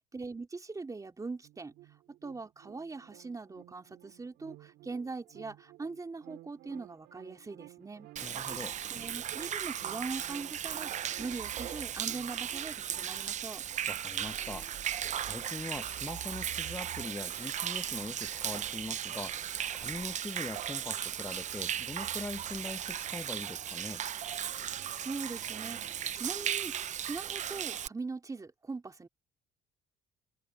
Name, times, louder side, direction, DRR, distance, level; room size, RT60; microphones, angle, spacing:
voice 1, 0.1-1.7 2.2-8.1 8.9-13.6 24.9-29.1, right 3 dB, 20° right, 3.8 m, -41 dB
sound 1, 1.4-12.7, right 16 dB, 85° right, 5.8 m, -54 dB
voice 2, 8.2-8.8 13.9-24.0, left 2 dB, 10° left, 0.9 m, -42 dB
Human voice / Rain / Stream, 8.2-27.9, right 10 dB, 45° right, 0.7 m, -36 dB
open air
cardioid pair, 110°, 17 cm